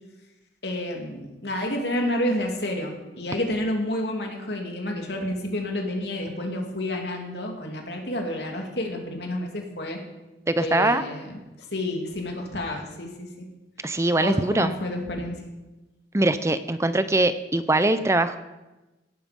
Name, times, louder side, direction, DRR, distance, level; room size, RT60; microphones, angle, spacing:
voice 1, 0.6-10.0 10.6-11.4 11.7-13.5 14.2-15.4, left 1 dB, 70° left, 2 dB, 2.9 m, -29 dB
voice 2, 10.5-11.0 13.8-14.7 16.1-18.4, right 2 dB, 15° right, 12 dB, 0.6 m, -22 dB
17.5 x 11.5 x 5.4 m, 1.1 s
head